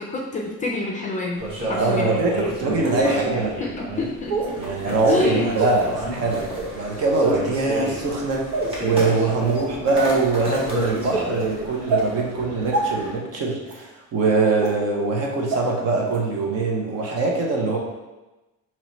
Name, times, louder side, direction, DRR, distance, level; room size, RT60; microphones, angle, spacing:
voice 1, 0.0-2.2 3.0-3.2 3.6-3.7 4.0-4.4 5.1-5.4, left 2 dB, 25° left, -1 dB, 0.4 m, -27 dB
sound 1, 1.4-13.1, right 1 dB, 15° right, 1.1 m, -31 dB
voice 2, 1.7-3.5 4.6-17.8, right 3 dB, 50° right, -1 dB, 0.9 m, -23 dB
sound 2, 1.8-1.9 2.8-2.9 4.3-4.5 5.5-5.7 6.5-6.7 7.7-7.9 8.5-8.7 9.5-9.6 10.2-10.4 11.1-11.2 11.9-12.0 12.7-12.8 13.7-13.8 14.6-14.7 15.5-15.6 16.1-16.2, right 3 dB, 80° right, 1.0 m, -25 dB
5.6 x 3.0 x 3.1 m, 1.1 s
cardioid pair, 165°, 32 cm